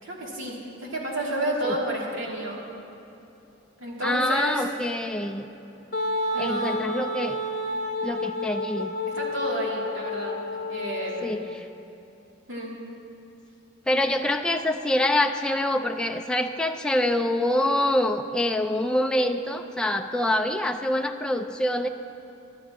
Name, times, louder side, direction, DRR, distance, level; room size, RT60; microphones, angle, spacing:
voice 1, 0.0-2.6 3.8-4.6 6.3-6.8 9.1-10.4 10.7-11.3 12.5-12.7, right 1 dB, 80° right, -4 dB, 2.9 m, -30 dB
voice 2, 4.0-5.5 6.4-7.4 8.0-8.9 11.2-11.7 13.9-21.9, left 1 dB, 5° left, 4 dB, 0.4 m, -25 dB
Wind instrument woodwind instrument, 5.9-11.6, left 1 dB, 60° left, 0.8 m, -30 dB
23.0 x 11.5 x 3.0 m, 2.9 s
head